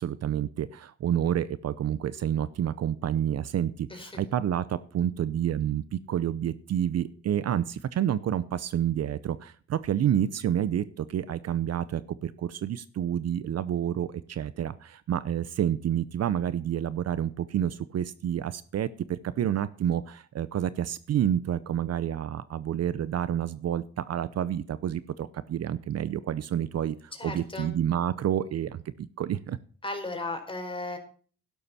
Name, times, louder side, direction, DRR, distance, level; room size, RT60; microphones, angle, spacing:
voice 1, 0.0-27.0 27.2-29.6, right 10 dB, 55° right, 16 dB, 0.7 m, -29 dB
voice 2, 27.1-27.7 29.8-31.0, left 2 dB, 15° left, 4 dB, 4.4 m, -35 dB
11.5 x 11.5 x 4.2 m, 0.43 s
cardioid pair, 90°, 30 cm